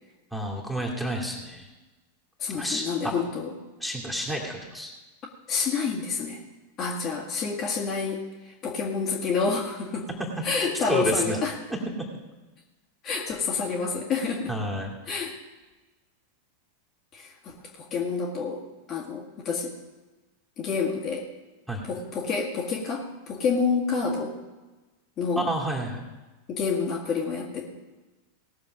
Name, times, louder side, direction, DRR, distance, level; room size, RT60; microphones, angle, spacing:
voice 1, 0.3-1.7 2.6-3.1 3.8-4.9 10.3-10.4 10.7-11.4 14.5-15.0 21.7-21.8 25.3-26.0, equal, ahead, -2 dB, 2.5 m, -30 dB
voice 2, 2.4-3.5 5.5-6.4 6.8-10.1 10.4-11.5 13.0-14.5 15.1-15.4 17.1-18.6 18.9-19.7 20.6-21.3 21.8-24.3 25.2-25.5 26.5-27.7, left 5 dB, 30° left, -2 dB, 2.0 m, -28 dB
19.0 x 6.8 x 5.1 m, 1.2 s
figure-of-eight pair, 90°, 0 cm